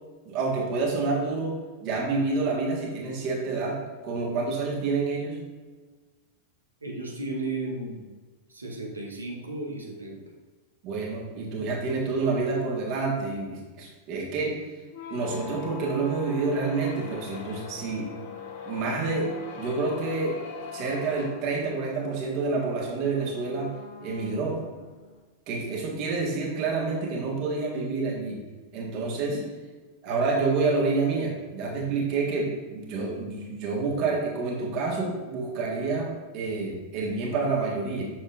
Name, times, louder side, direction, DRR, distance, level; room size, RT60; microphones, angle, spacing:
voice 1, 0.2-5.4 10.8-14.5 15.1-18.1 18.6-19.3 19.5-20.4 20.7-23.7 24.0-24.6 25.5-28.4 28.7-29.5 30.0-38.0, right 3 dB, 40° right, -2 dB, 1.6 m, -28 dB
voice 2, 6.8-8.1 8.5-10.2, right 2 dB, 80° right, 0 dB, 1.0 m, -34 dB
sound 1, 14.9-25.2, left 5 dB, 55° left, 0.9 m, -42 dB
6.7 x 6.0 x 2.5 m, 1.3 s
figure-of-eight pair, 90°, 0 cm